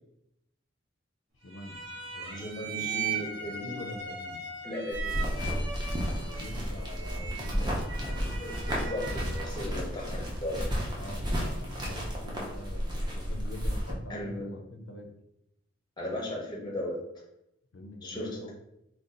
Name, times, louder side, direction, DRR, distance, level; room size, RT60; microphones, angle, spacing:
voice 1, 1.4-2.9 3.3-4.5 6.2-8.2 11.0-15.1 17.7-18.5, left 1 dB, 75° left, 3 dB, 0.5 m, -44 dB
sound 1, 1.5-9.6, right 5 dB, 80° right, 0.8 m, -39 dB
voice 2, 2.3-3.8 4.6-5.2 7.6-7.7 8.4-10.9 14.1-14.5 16.0-17.0 18.0-18.5, left 1 dB, 20° left, -1 dB, 0.6 m, -36 dB
sound 2, 4.9-13.9, equal, 20° right, 0.5 m, -32 dB
2.5 x 2.2 x 3.7 m, 0.80 s
head